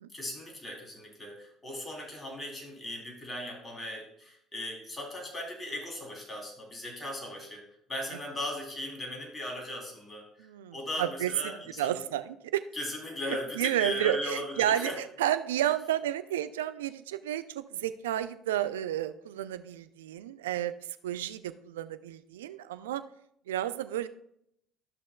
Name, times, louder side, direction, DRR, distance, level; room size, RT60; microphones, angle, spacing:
voice 1, 0.1-12.0 12.7-15.0, left 1 dB, 25° left, 0 dB, 3.3 m, -38 dB
voice 2, 10.4-12.6 13.3-20.7 21.0-23.0 23.5-24.1, right 12 dB, 75° right, 12 dB, 0.4 m, -31 dB
13.5 x 6.2 x 2.3 m, 0.75 s
figure-of-eight pair, 55°, 0 cm